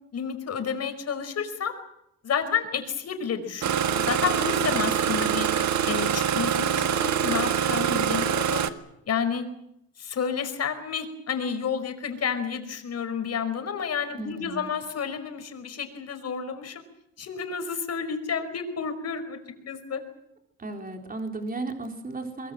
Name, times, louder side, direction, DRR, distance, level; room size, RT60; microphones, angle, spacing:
voice 1, 0.1-1.7 2.2-5.5 5.9-8.7 9.1-9.5 10.0-16.8 17.2-19.4 19.7-20.0, left 6 dB, 55° left, 8 dB, 5.1 m, -30 dB
Engine starting, 3.6-8.7, right 8 dB, 65° right, 1.8 m, -25 dB
voice 2, 14.2-14.7 20.6-22.5, right 2 dB, 30° right, 4 dB, 3.9 m, -35 dB
23.0 x 22.5 x 7.8 m, 0.81 s
cardioid pair, 90°, 30 cm